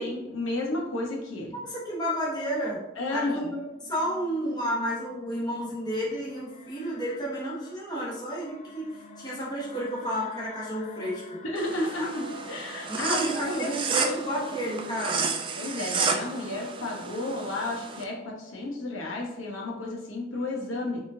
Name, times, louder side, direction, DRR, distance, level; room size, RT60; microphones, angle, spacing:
voice 1, 0.0-1.5 3.0-3.5 11.4-13.7 15.5-21.0, left 2 dB, 90° left, -1 dB, 1.1 m, -32 dB
voice 2, 1.6-2.8 3.1-8.9 9.2-11.2 12.0-12.1 12.9-15.3, equal, 20° left, -6 dB, 1.1 m, -31 dB
sound 1, 3.4-15.3, left 3 dB, 40° left, 0.4 m, -48 dB
sound 2, 11.6-18.0, right 5 dB, 25° right, 0.4 m, -32 dB
4.7 x 3.6 x 2.7 m, 0.94 s
head